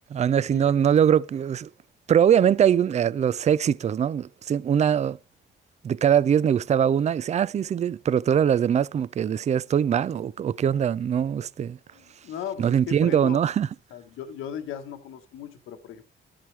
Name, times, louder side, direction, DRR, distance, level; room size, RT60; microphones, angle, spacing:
voice 1, 0.1-1.7 2.1-5.2 5.8-11.8 12.6-13.7, right 8 dB, 35° right, 0.4 m, -22 dB
voice 2, 11.9-13.5 13.9-16.0, left 9 dB, 90° left, 1.3 m, -37 dB
12.5 x 7.5 x 3.3 m
cardioid pair, 90°, 20 cm